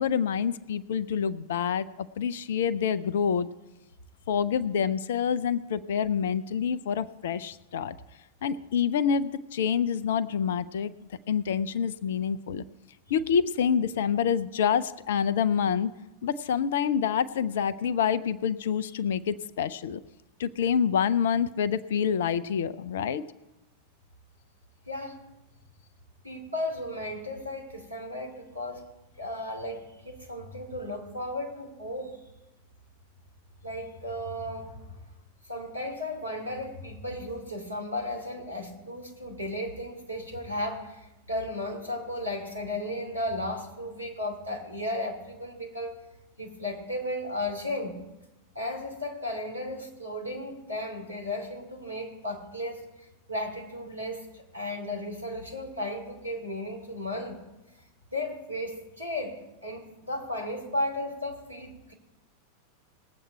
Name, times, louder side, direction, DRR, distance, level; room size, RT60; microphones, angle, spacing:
voice 1, 0.0-3.5 4.3-7.9 8.4-10.9 11.3-12.6 13.1-15.9 16.2-20.0 20.4-23.2, left 7 dB, 60° left, 15 dB, 0.5 m, -27 dB
voice 2, 24.9-25.2 26.2-28.9 29.2-32.2 33.6-35.0 35.4-45.9 46.4-48.0 48.5-52.9 53.3-57.4 58.1-61.9, left 1 dB, 85° right, 1 dB, 2.6 m, -35 dB
19.5 x 7.9 x 4.5 m, 0.99 s
figure-of-eight pair, 90°, 0 cm